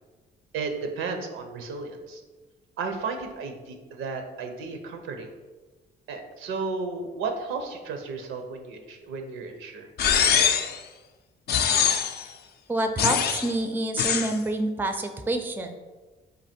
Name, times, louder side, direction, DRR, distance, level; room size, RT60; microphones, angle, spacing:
voice 1, 0.5-2.2 2.8-5.3 6.1-9.9, right 4 dB, 85° right, 5 dB, 0.7 m, -33 dB
sound 1, 10.0-10.8 11.5-12.2 13.0-13.5 14.0-14.3, left 7 dB, 55° left, 0.4 m, -23 dB
voice 2, 12.7-15.7, right 1 dB, 10° right, 7 dB, 0.4 m, -27 dB
4.0 x 2.8 x 4.3 m, 1.3 s
cardioid pair, 90°, 20 cm